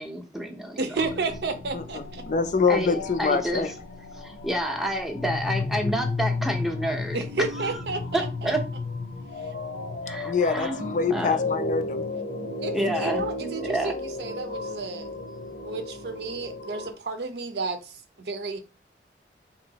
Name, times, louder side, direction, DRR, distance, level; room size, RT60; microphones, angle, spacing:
voice 1, 0.0-0.8 2.7-3.7 4.1-7.2 7.6-7.8 8.1-8.6 10.1-10.8 11.1-11.4 12.7-13.9, right 1 dB, ahead, 0.6 m, -29 dB
voice 2, 0.8-2.2 7.1-8.5 9.4-9.5 12.6-15.1 15.6-18.6, right 3 dB, 65° right, 0.6 m, -32 dB
sound 1, 0.9-16.9, left 3 dB, 85° left, 0.9 m, -33 dB
voice 3, 1.7-3.7 10.2-12.0 12.8-12.9, left 5 dB, 45° left, 0.4 m, -25 dB
4.0 x 2.9 x 2.8 m
head